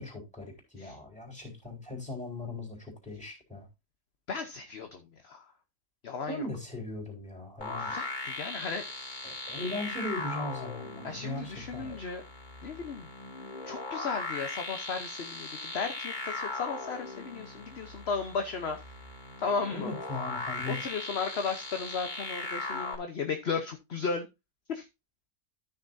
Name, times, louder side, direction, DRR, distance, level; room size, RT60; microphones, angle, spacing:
voice 1, 0.0-3.7 6.3-7.9 9.2-12.0 19.7-20.8, left 2 dB, 5° left, 4.0 m, -39 dB
voice 2, 4.3-5.4 6.0-6.4 7.8-8.9 11.0-12.2 12.6-13.1 13.7-18.8 19.4-19.9 20.7-24.3 24.7-24.8, left 5 dB, 50° left, 1.1 m, -35 dB
sound 1, 7.6-23.0, left 3 dB, 30° left, 2.7 m, -39 dB
13.5 x 6.5 x 2.6 m
omnidirectional pair, 1.5 m